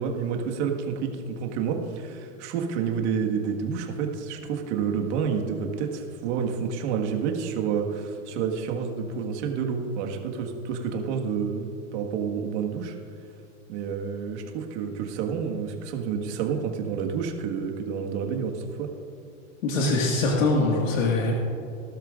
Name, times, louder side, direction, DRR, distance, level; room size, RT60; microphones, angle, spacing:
voice 1, 0.0-13.0 13.7-18.9, right 6 dB, 60° right, 3 dB, 1.7 m, -29 dB
voice 2, 19.6-21.3, left 2 dB, 85° left, -1 dB, 1.9 m, -23 dB
19.5 x 12.0 x 2.5 m, 2.6 s
supercardioid pair, 135°, 38 cm